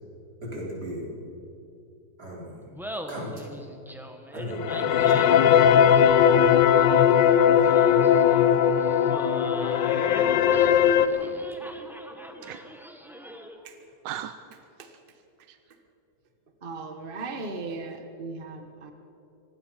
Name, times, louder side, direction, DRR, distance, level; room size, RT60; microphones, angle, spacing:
voice 1, 0.4-1.1 2.2-3.5 4.3-5.6, equal, 65° right, -3 dB, 5.2 m, -37 dB
Laughter, 2.6-13.7, equal, ahead, 1.4 m, -42 dB
sound 1, 4.5-11.1, left 9 dB, 90° left, 1.5 m, -19 dB
voice 2, 7.1-8.4 10.5-11.3 12.4-12.6 14.0-14.4 15.5-15.6, right 11 dB, 90° right, 11 dB, 1.3 m, -42 dB
voice 3, 16.6-18.9, right 3 dB, 30° right, 5 dB, 1.5 m, -37 dB
25.0 x 19.5 x 5.7 m, 2.8 s
omnidirectional pair, 1.9 m